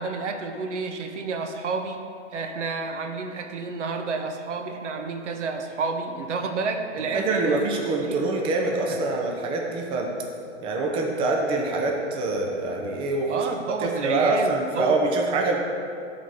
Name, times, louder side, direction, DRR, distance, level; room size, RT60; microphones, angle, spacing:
voice 1, 0.0-7.7 8.0-8.3 8.9-9.0 13.3-15.0, right 4 dB, 70° right, 5 dB, 1.0 m, -30 dB
voice 2, 7.0-10.1 10.6-13.5 13.8-15.6, right 2 dB, 15° right, 0 dB, 0.6 m, -25 dB
7.5 x 4.1 x 6.4 m, 2.4 s
hypercardioid pair, 135°, 37 cm